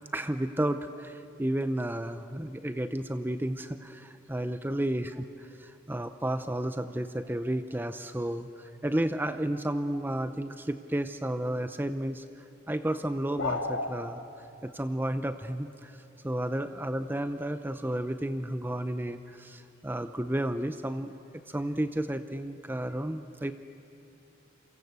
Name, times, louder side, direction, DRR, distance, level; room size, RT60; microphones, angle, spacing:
voice 1, 0.1-5.2 5.6-12.2 12.7-16.0 16.2-21.1 21.5-23.5, right 1 dB, 10° right, 10 dB, 0.6 m, -32 dB
sound 1, 13.4-13.9, left 3 dB, 70° left, 2.1 m, -30 dB
29.0 x 23.5 x 8.2 m, 2.7 s
head